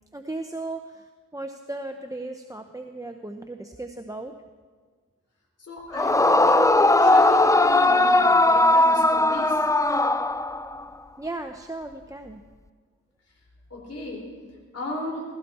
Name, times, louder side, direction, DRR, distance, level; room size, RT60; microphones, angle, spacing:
voice 1, 0.1-4.3 11.2-12.4, right 2 dB, 10° right, 5 dB, 0.7 m, -36 dB
voice 2, 5.6-9.6 13.7-14.2 14.7-15.2, left 1 dB, 55° left, -1 dB, 3.6 m, -35 dB
Yell / Screaming, 5.9-10.8, left 2 dB, 10° left, 0.4 m, -19 dB
16.5 x 16.0 x 4.2 m, 1.5 s
wide cardioid pair, 80°, 30 cm